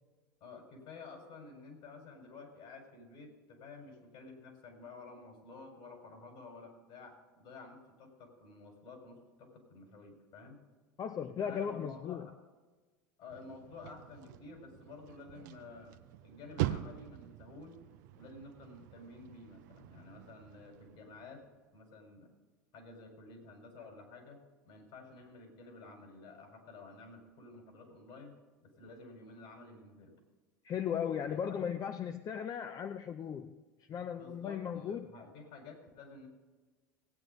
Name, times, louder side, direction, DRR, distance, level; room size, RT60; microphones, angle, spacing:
voice 1, 0.4-10.6 11.4-12.3 13.2-17.8 18.1-21.4 21.7-22.3 22.7-24.4 24.7-28.3 28.6-30.1 31.3-31.6 34.2-36.3, left 3 dB, 60° left, 3 dB, 4.8 m, -51 dB
voice 2, 11.0-12.3 30.6-33.6 33.9-35.1, left 8 dB, 35° left, 9 dB, 0.6 m, -37 dB
sound 1, 13.3-21.6, right 14 dB, 70° right, 0.6 m, -43 dB
18.5 x 9.2 x 3.9 m, 1.3 s
hypercardioid pair, 85°, 10 cm